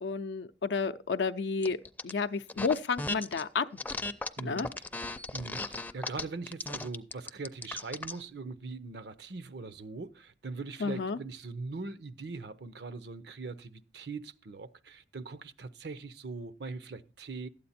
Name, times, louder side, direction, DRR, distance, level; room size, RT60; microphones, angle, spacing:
voice 1, 0.0-1.8 2.0-3.7 4.4-4.7 10.8-11.2, left 4 dB, 85° left, 0.5 m, -31 dB
sound 1, 1.6-2.1 2.5-3.4 3.8-8.2, left 2 dB, 10° left, 0.4 m, -36 dB
voice 2, 4.4-4.9 5.3-17.5, right 3 dB, 65° right, 0.7 m, -41 dB
12.0 x 8.5 x 4.2 m
head